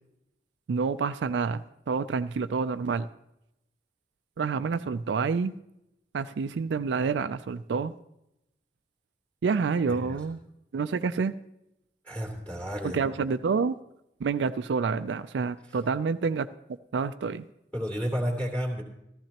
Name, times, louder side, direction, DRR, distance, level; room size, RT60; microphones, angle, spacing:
voice 1, 0.7-3.1 4.4-5.5 6.1-7.9 9.4-10.4 10.7-11.3 12.8-13.7 14.2-16.5 16.9-17.4, right 5 dB, 75° right, 11 dB, 0.4 m, -28 dB
voice 2, 9.9-10.2 12.0-13.1 17.7-18.8, equal, 10° left, -2 dB, 2.6 m, -31 dB
15.0 x 14.0 x 2.9 m, 0.85 s
head